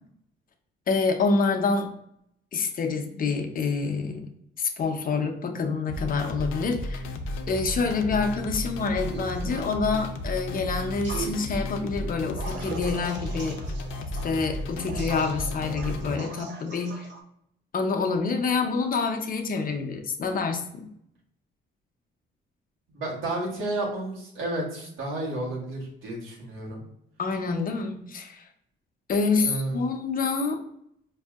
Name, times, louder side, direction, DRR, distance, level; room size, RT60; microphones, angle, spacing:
voice 1, 0.9-1.9 2.5-4.3 4.6-7.0 7.5-13.6 14.2-17.1 17.7-20.9 27.2-28.5 29.1-30.6, left 4 dB, 45° left, 4 dB, 0.6 m, -27 dB
sound 1, 5.9-16.2, left 1 dB, 90° left, 0.5 m, -33 dB
sound 2, 8.9-9.7 11.0-11.3 12.4-17.2, right 5 dB, 65° right, 0.7 m, -40 dB
voice 2, 22.9-26.8 29.4-29.7, right 2 dB, 80° right, -3 dB, 1.4 m, -31 dB
4.8 x 2.7 x 2.4 m, 0.74 s
cardioid pair, 90°, 20 cm